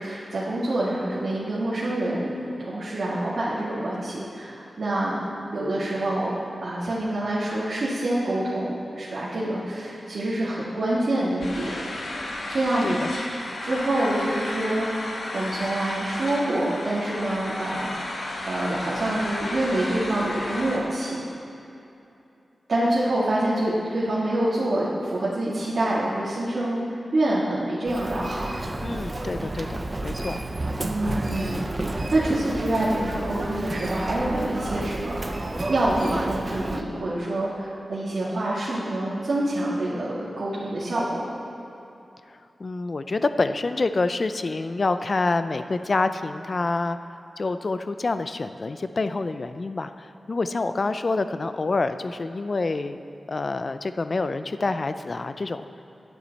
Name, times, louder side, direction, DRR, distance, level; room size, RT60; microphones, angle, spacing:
voice 1, 0.0-2.3 2.6-5.2 5.5-6.3 6.6-11.9 12.5-13.0 13.3-14.9 15.3-18.2 18.5-21.2 22.7-26.8 27.1-28.4 30.8-31.6 31.9-35.4 35.7-41.2, right 1 dB, 65° right, -10 dB, 1.9 m, -26 dB
sound 1, 11.4-20.8, left 1 dB, 85° left, 1.4 m, -33 dB
Human voice, 27.9-36.8, right 2 dB, 25° right, 0.5 m, -31 dB
voice 2, 28.8-30.4 42.6-47.0 47.4-53.0 53.3-55.6, left 3 dB, 45° left, 10 dB, 0.4 m, -27 dB
10.5 x 9.3 x 4.1 m, 2.7 s
wide cardioid pair, 125°, 0 cm